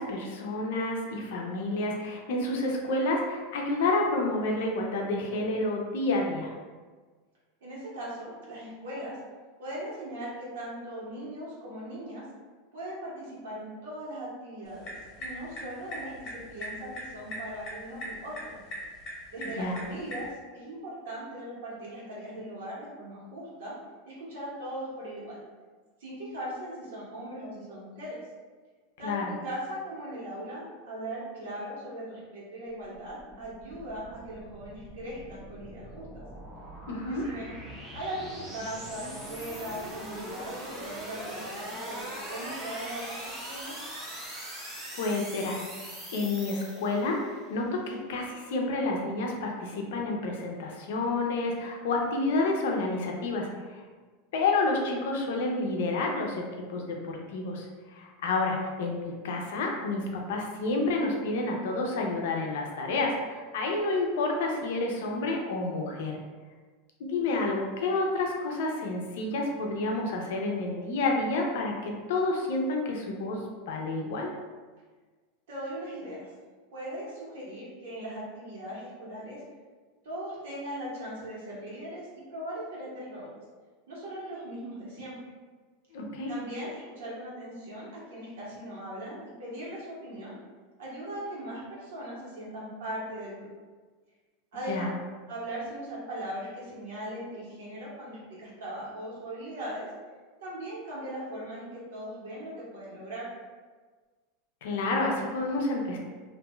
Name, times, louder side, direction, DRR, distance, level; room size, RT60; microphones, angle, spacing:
voice 1, 0.0-6.5 19.4-19.8 29.0-29.4 36.9-37.3 45.0-53.8 54.3-66.2 67.0-74.3 85.9-86.3 94.7-94.9 104.6-106.0, left 2 dB, 70° left, 0 dB, 0.5 m, -29 dB
voice 2, 7.6-9.2 9.6-12.2 12.7-18.6 19.3-20.3 20.5-23.7 24.1-25.4 26.0-28.2 29.0-36.1 37.1-37.6 37.9-43.8 75.5-76.3 76.7-79.4 80.0-83.3 83.9-85.2 86.3-90.3 90.8-93.5 94.5-94.9 95.3-99.8 100.4-103.3, right 1 dB, 80° right, -6 dB, 1.2 m, -39 dB
sound 1, 14.6-20.3, equal, 30° left, 1.0 m, -41 dB
sound 2, 32.7-47.3, right 1 dB, 15° right, 0.6 m, -41 dB
2.6 x 2.2 x 3.0 m, 1.4 s
supercardioid pair, 170°, 0 cm